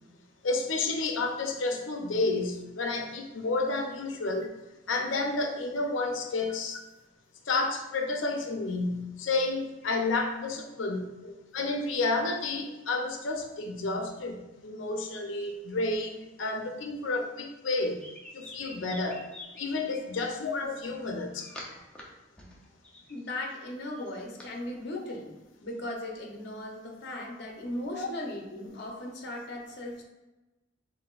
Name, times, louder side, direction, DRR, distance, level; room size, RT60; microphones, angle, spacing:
voice 1, 0.4-4.5 4.9-6.8 7.5-11.1 11.5-18.0 18.3-19.2 19.5-21.5 27.9-28.1, left 3 dB, 90° left, 4 dB, 0.6 m, -30 dB
sound 1, 17.7-20.0 20.9-22.0 22.4-24.5, left 1 dB, 5° left, 0.6 m, -47 dB
voice 2, 23.1-25.3 25.6-30.0, left 1 dB, 60° left, 1 dB, 0.8 m, -38 dB
5.8 x 2.6 x 2.4 m, 1.1 s
head